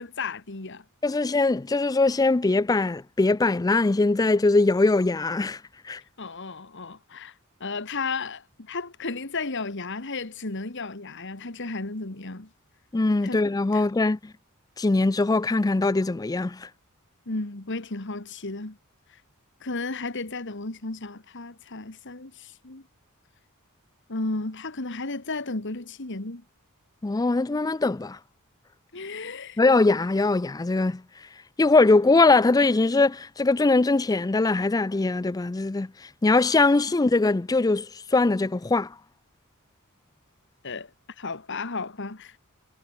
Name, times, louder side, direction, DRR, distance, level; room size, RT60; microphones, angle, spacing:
voice 1, 0.0-0.8 6.2-7.3 7.6-12.5 13.2-13.4 13.7-13.9 17.3-18.8 19.6-22.9 24.1-26.4 28.9-29.6 40.6-40.9 41.2-42.4, left 3 dB, 55° left, 1.9 m, -34 dB
voice 2, 1.0-5.6 5.9-6.0 12.9-14.3 14.8-16.7 27.0-28.2 29.6-31.0 31.6-35.9 36.2-37.9 38.1-38.9, left 3 dB, 15° left, 0.4 m, -21 dB
head